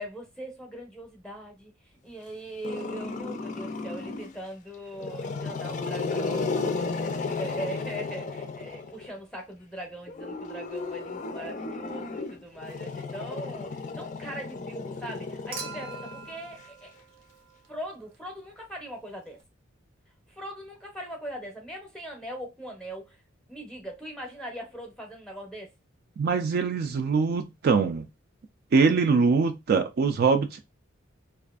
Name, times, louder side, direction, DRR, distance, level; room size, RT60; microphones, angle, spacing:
voice 1, 0.0-1.7 2.0-16.9 17.7-19.4 20.3-23.2 23.5-25.7, right 1 dB, 5° left, 0.7 m, -40 dB
Growling, 2.6-4.4 4.9-9.1 10.1-16.6, left 4 dB, 40° left, 0.4 m, -34 dB
Human group actions / Chink clink / Liquid, 15.5-17.9 19.4-19.5, right 5 dB, 80° right, 0.7 m, -42 dB
voice 2, 26.2-28.1 28.7-30.6, right 5 dB, 50° right, 0.3 m, -23 dB
2.5 x 2.4 x 2.3 m
head